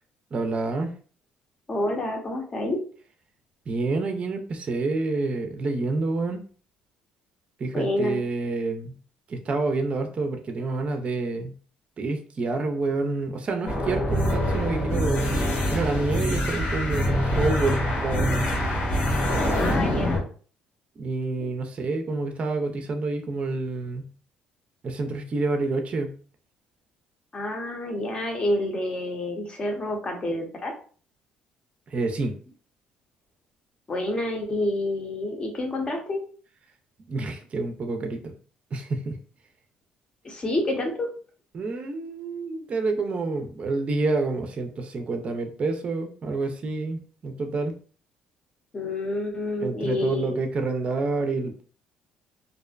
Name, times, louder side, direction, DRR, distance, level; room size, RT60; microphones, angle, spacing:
voice 1, 0.3-0.9 3.7-6.4 7.6-9.0 9.3-11.5 12.0-15.3 15.7-18.5 21.0-24.1 24.8-26.2 31.9-32.4 37.1-38.3 38.7-39.2 41.5-47.8 49.6-51.6, right 3 dB, 40° right, 5 dB, 0.4 m, -28 dB
voice 2, 1.7-2.8 7.7-8.2 19.6-20.2 27.3-30.7 33.9-36.2 40.2-41.1 48.7-50.4, left 1 dB, 35° left, 3 dB, 0.7 m, -28 dB
sound 1, 13.6-20.2, left 1 dB, 65° left, 1.2 m, -25 dB
2.5 x 2.1 x 2.4 m, 0.42 s
supercardioid pair, 80°, 3 cm